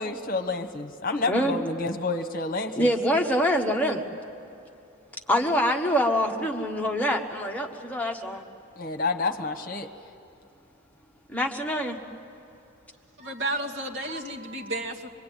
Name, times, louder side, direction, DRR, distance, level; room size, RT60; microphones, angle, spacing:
voice 1, 0.0-2.8 8.8-9.9, left 3 dB, 40° left, 5 dB, 1.3 m, -29 dB
voice 2, 1.3-1.6 2.8-4.0 5.3-8.4 11.3-12.0, equal, 5° left, 1 dB, 1.4 m, -25 dB
voice 3, 13.2-15.1, right 2 dB, 60° right, 0 dB, 2.2 m, -32 dB
26.0 x 23.0 x 9.3 m, 2.7 s
head